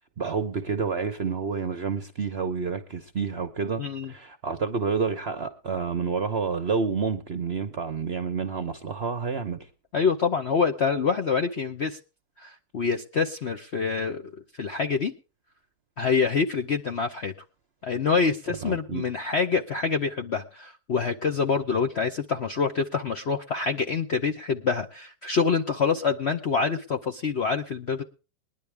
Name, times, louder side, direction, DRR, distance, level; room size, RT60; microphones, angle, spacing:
voice 1, 0.2-9.6 18.6-19.1, right 5 dB, 45° right, 0.8 m, -29 dB
voice 2, 3.8-4.1 9.9-12.0 12.4-14.2 14.6-15.1 16.0-17.3 17.8-28.0, left 5 dB, 55° left, 0.8 m, -26 dB
20.5 x 10.5 x 3.4 m
omnidirectional pair, 2.0 m